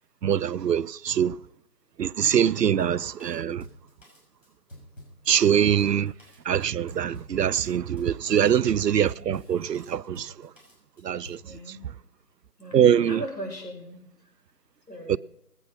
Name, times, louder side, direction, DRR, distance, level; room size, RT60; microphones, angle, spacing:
voice 1, 0.2-1.4 2.0-3.6 5.3-6.1 6.5-10.3 11.0-11.4 12.7-13.2 15.1-15.2, right 9 dB, 80° right, 0.6 m, -23 dB
Drum kit, 2.8-11.5, equal, 55° left, 6.9 m, -49 dB
voice 2, 11.4-11.8 12.6-14.0 14.9-15.2, equal, 90° left, 5.8 m, -38 dB
20.0 x 9.0 x 5.6 m
figure-of-eight pair, 170°, 48 cm